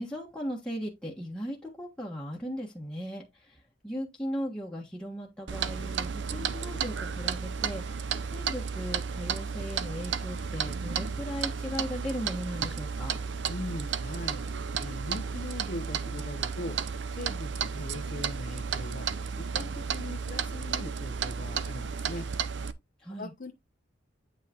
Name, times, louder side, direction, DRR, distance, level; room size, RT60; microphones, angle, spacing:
voice 1, 0.0-13.2 23.0-23.3, equal, 5° left, 1.4 m, -37 dB
Clock, 5.5-22.7, right 6 dB, 75° right, 0.6 m, -33 dB
voice 2, 13.5-16.8 17.1-19.1 19.4-22.3 23.2-23.5, left 1 dB, 45° left, 0.8 m, -40 dB
8.9 x 5.7 x 2.9 m
head